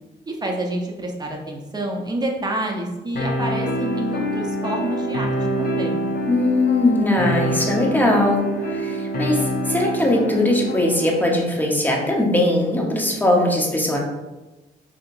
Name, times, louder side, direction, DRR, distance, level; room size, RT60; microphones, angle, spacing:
voice 1, 0.3-6.0, right 1 dB, 20° right, 0 dB, 0.8 m, -28 dB
sound 1, 3.2-11.2, equal, 45° left, 0.7 m, -26 dB
voice 2, 6.3-14.0, left 1 dB, 10° left, -1 dB, 0.9 m, -20 dB
5.0 x 2.9 x 2.5 m, 1.1 s
cardioid pair, 90°, 20 cm